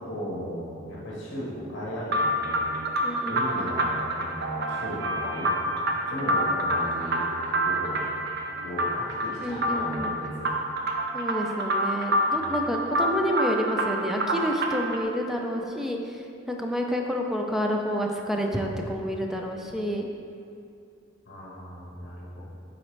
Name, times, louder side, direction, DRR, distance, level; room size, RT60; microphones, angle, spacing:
voice 1, 0.0-2.7 3.3-5.5 6.1-8.0 8.5-10.9 12.3-12.5 21.2-22.4, equal, 60° left, -7 dB, 1.3 m, -36 dB
sound 1, 2.1-15.0, right 1 dB, 55° right, 0.5 m, -27 dB
voice 2, 3.0-3.6 9.4-10.1 11.1-20.1, equal, ahead, 1 dB, 0.5 m, -29 dB
8.5 x 4.2 x 3.3 m, 2.5 s
head